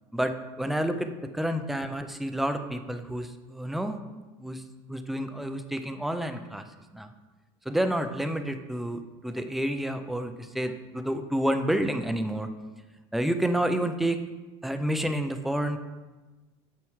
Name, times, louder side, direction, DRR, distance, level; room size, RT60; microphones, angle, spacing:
voice 1, 0.1-4.0 4.4-4.6 4.9-6.6 6.9-7.1 7.7-12.5 13.1-14.2 14.6-15.8, right 1 dB, ahead, 8 dB, 0.4 m, -29 dB
8.9 x 5.9 x 3.1 m, 1.2 s
cardioid pair, 150°, 13 cm